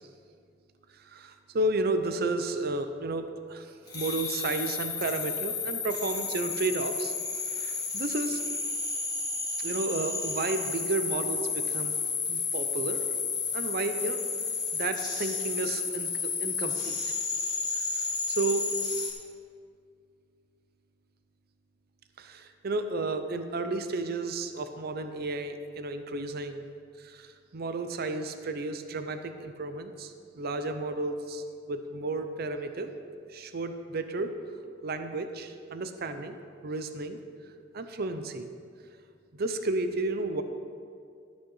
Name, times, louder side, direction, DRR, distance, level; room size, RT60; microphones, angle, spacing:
voice 1, 0.9-7.1 7.5-8.4 9.6-11.9 12.3-13.0 13.5-14.2 14.7-16.1 16.4-16.9 18.3-18.7 22.2-26.6 27.0-32.9 33.3-34.3 34.8-36.4 36.6-37.2 37.7-38.5 39.3-40.4, right 2 dB, 55° right, 8 dB, 0.6 m, -32 dB
sound 1, 3.9-19.1, left 5 dB, 25° left, 2.1 m, -32 dB
12.5 x 6.2 x 5.5 m, 2.3 s
head